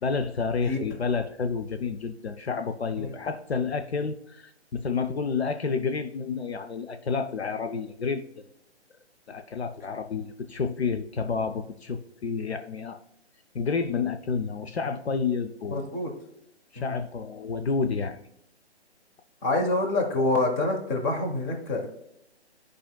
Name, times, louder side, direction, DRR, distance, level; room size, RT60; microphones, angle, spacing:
voice 1, 0.0-8.4 9.3-13.0 13.5-15.8 16.7-18.2, left 5 dB, 65° left, 7 dB, 0.6 m, -30 dB
voice 2, 15.7-16.1 16.8-17.0 19.4-21.9, left 2 dB, 20° left, 2 dB, 1.0 m, -26 dB
12.0 x 5.0 x 2.3 m, 0.77 s
figure-of-eight pair, 135°, 34 cm